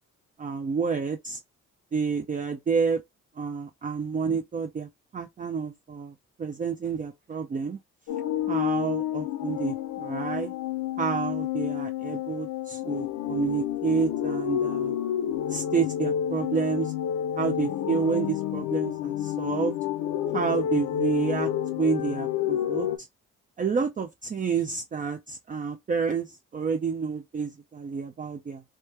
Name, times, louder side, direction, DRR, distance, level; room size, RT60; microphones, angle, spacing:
voice 1, 0.4-1.4 1.9-3.0 3.4-4.9 5.1-7.8 8.5-10.5 11.0-15.0 15.5-16.9 17.4-19.7 20.3-23.1 23.6-28.6, right 5 dB, 25° right, 0.4 m, -29 dB
sound 1, 8.1-23.0, left 10 dB, 80° left, 0.6 m, -29 dB
3.0 x 2.3 x 3.2 m
cardioid pair, 90°, 30 cm